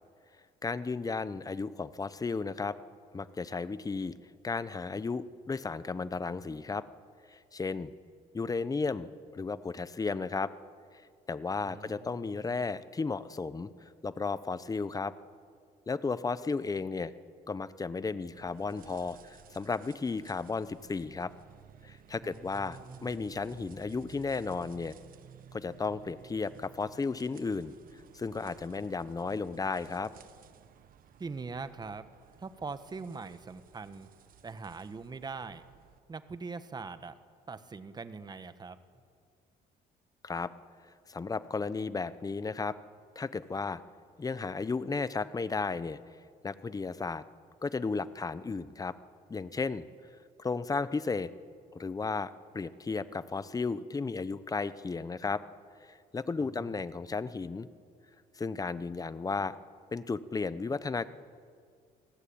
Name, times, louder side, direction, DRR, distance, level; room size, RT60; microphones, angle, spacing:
voice 1, 0.6-2.8 3.1-4.1 4.4-6.8 7.3-7.9 8.3-10.5 11.3-13.7 14.0-15.1 15.9-17.1 17.5-21.3 21.8-24.9 25.5-27.7 28.1-30.1 40.2-40.5 41.1-42.7 43.2-43.8 44.2-46.0 46.4-47.2 47.6-48.9 49.3-49.9 50.4-51.3 51.7-55.4 55.9-57.7 58.4-59.5 59.9-61.1, left 4 dB, 20° left, 15 dB, 1.0 m, -34 dB
voice 2, 11.6-12.6 22.2-23.3 31.2-32.1 32.4-34.1 34.4-35.6 36.1-37.2 37.5-38.8 56.5-56.8, right 4 dB, 25° right, 12 dB, 1.3 m, -42 dB
sound 1, 18.3-36.0, right 9 dB, 55° right, 1.3 m, -56 dB
28.5 x 19.0 x 8.7 m, 2.2 s
cardioid pair, 110°, 17 cm